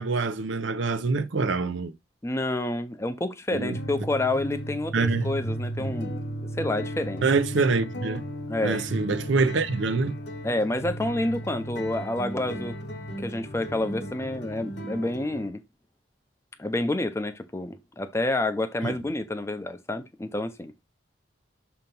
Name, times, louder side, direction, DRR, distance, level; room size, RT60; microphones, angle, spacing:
voice 1, 0.0-1.9 3.5-3.8 4.9-5.3 7.2-8.2 8.6-10.2 18.8-18.9, right 4 dB, 70° right, 0.6 m, -25 dB
voice 2, 2.2-6.2 6.6-7.2 8.5-8.8 10.4-12.7 13.2-15.6 16.6-20.7, left 2 dB, 15° left, 0.5 m, -29 dB
sound 1, 3.7-15.5, equal, 55° left, 1.0 m, -35 dB
6.7 x 2.9 x 5.3 m
head